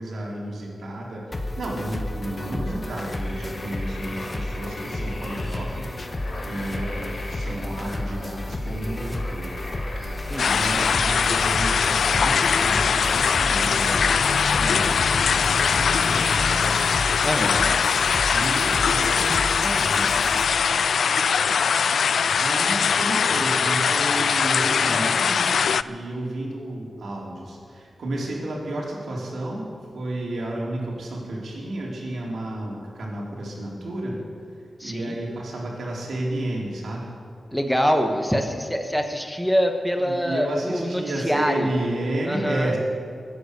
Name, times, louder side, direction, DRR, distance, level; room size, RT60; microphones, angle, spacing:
voice 1, 0.0-6.2 6.5-9.6 10.1-10.2 10.5-16.9 18.3-20.1 22.4-34.2 34.8-37.1 40.0-42.8, right 1 dB, 80° right, -3 dB, 3.9 m, -31 dB
sound 1, 1.3-20.4, left 1 dB, 30° left, 1.2 m, -32 dB
sound 2, 2.2-22.1, left 2 dB, 50° left, 4.2 m, -42 dB
voice 2, 10.3-10.8 17.2-17.8 34.8-35.2 37.5-41.7 42.2-42.7, equal, ahead, 3 dB, 1.2 m, -25 dB
sound 3, 10.4-25.8, left 6 dB, 80° left, 0.3 m, -21 dB
21.0 x 9.7 x 6.7 m, 2.3 s
wide cardioid pair, 130°, 0 cm